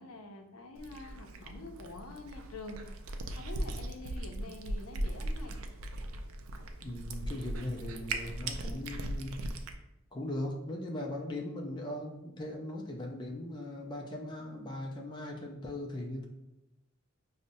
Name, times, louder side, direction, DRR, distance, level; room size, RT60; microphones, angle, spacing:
voice 1, 0.0-2.8 3.3-5.6, left 2 dB, 75° left, 4 dB, 0.5 m, -46 dB
Cat, 0.8-9.7, right 1 dB, 75° right, 0.4 m, -39 dB
voice 2, 6.8-9.4 10.1-16.3, left 1 dB, 20° left, 0 dB, 0.4 m, -39 dB
5.2 x 2.1 x 2.6 m, 0.90 s
head